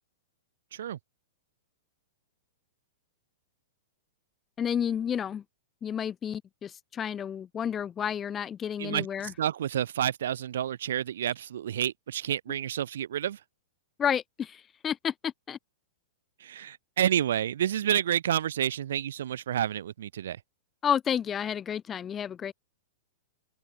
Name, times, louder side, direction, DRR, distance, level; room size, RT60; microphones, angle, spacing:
voice 1, 4.6-5.4 5.8-9.3 14.0-15.6 20.8-22.5, left 8 dB, 20° left, 0.5 m, -31 dB
voice 2, 8.8-13.4 16.4-20.4, right 10 dB, 75° right, 0.6 m, -29 dB
open air
hypercardioid pair, 140°, 0 cm